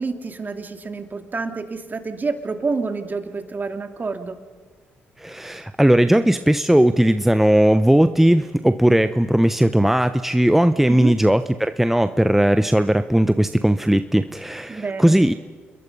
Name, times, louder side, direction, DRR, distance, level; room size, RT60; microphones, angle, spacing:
voice 1, 0.0-4.4 10.9-11.1 14.7-15.2, right 4 dB, 35° right, 6 dB, 2.7 m, -28 dB
voice 2, 5.2-15.3, right 1 dB, 5° right, 10 dB, 0.9 m, -17 dB
28.5 x 21.5 x 5.5 m, 1.5 s
hypercardioid pair, 50°, 5 cm